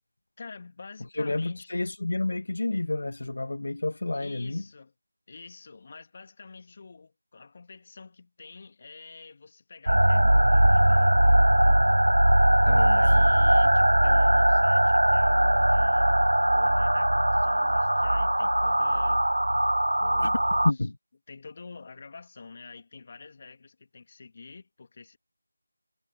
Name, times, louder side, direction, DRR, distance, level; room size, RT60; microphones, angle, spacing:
voice 1, 0.4-1.7 4.1-4.9 5.3-11.3 12.8-16.1 16.4-19.2 20.0-20.7 21.3-25.2, left 4 dB, 35° left, 2.5 m, -47 dB
voice 2, 1.1-4.6 12.6-13.1 20.2-20.3 20.6-21.0, left 2 dB, 60° left, 1.6 m, -29 dB
sound 1, 9.9-20.7, right 1 dB, 80° right, 0.7 m, -21 dB
figure-of-eight pair, 165°, 0 cm